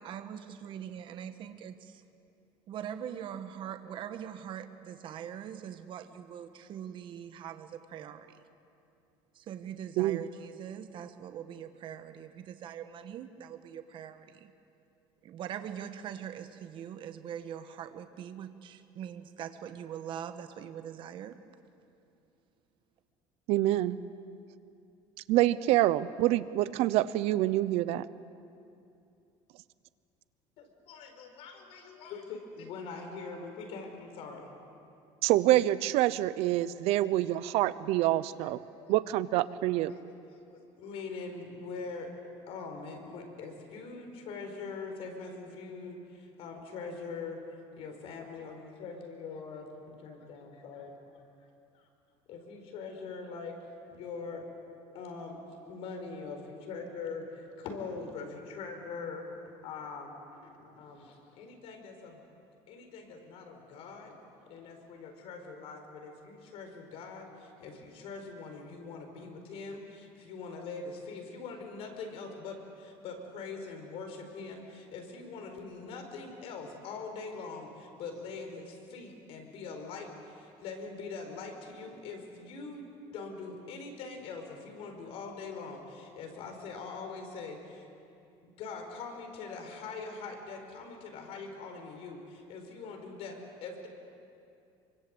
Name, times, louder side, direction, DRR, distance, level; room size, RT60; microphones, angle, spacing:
voice 1, 0.0-2.0 2.7-8.3 9.3-14.5 15.2-21.4, right 9 dB, 50° right, 8 dB, 1.4 m, -42 dB
voice 2, 23.5-24.0 25.3-28.0 35.2-38.6 38.9-39.9, right 15 dB, 70° right, 16 dB, 0.8 m, -26 dB
voice 3, 30.6-34.5 36.5-36.7 37.0-37.2 37.6-38.9 39.3-39.4 39.9-42.1 42.5-47.4 47.8-51.2 51.7-51.9 52.3-53.6 53.9-54.5 54.9-55.4 55.7-62.2 62.7-64.1 64.5-87.9 88.4-93.9, left 4 dB, 60° left, 4 dB, 4.9 m, -43 dB
27.0 x 24.5 x 8.0 m, 2.6 s
cardioid pair, 135°, 11 cm